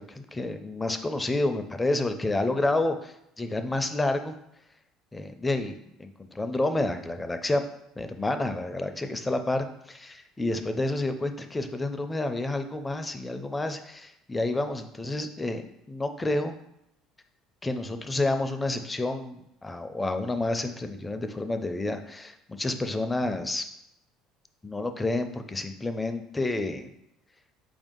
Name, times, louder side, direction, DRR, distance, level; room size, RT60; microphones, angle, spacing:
voice 1, 0.1-4.3 5.1-7.6 8.0-16.6 17.6-23.6 24.6-26.9, left 2 dB, 15° left, 8 dB, 0.4 m, -29 dB
4.6 x 2.6 x 3.7 m, 0.80 s
supercardioid pair, 90°, 0 cm